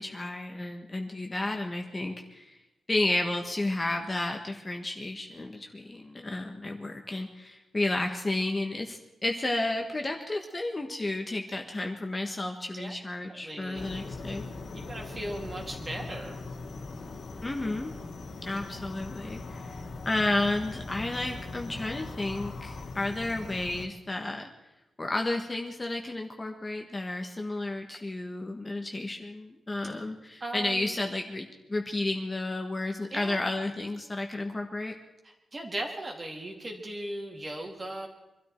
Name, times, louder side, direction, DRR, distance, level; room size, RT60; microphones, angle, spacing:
voice 1, 0.0-2.6 2.9-14.4 17.4-17.9 18.4-24.5 25.0-34.9, left 2 dB, 20° left, 3 dB, 1.4 m, -32 dB
voice 2, 13.3-13.9 14.7-16.4 30.4-31.0 33.1-33.6 35.2-38.1, right 1 dB, 25° right, 1 dB, 2.8 m, -38 dB
sound 1, 13.7-23.9, left 3 dB, 55° left, 2.0 m, -40 dB
24.5 x 13.0 x 4.5 m, 1.0 s
wide cardioid pair, 145°, 0 cm